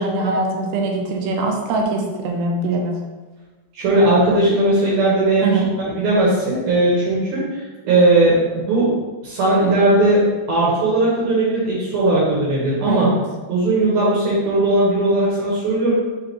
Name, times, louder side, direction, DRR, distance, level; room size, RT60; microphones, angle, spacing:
voice 1, 0.0-2.9 5.4-5.7 12.9-13.1, right 3 dB, 85° right, 1 dB, 2.8 m, -22 dB
voice 2, 3.8-8.4 8.7-8.9 9.2-13.1 13.5-15.9, right 2 dB, 65° right, -6 dB, 2.9 m, -18 dB
6.4 x 4.9 x 3.1 m, 1.3 s
omnidirectional pair, 4.9 m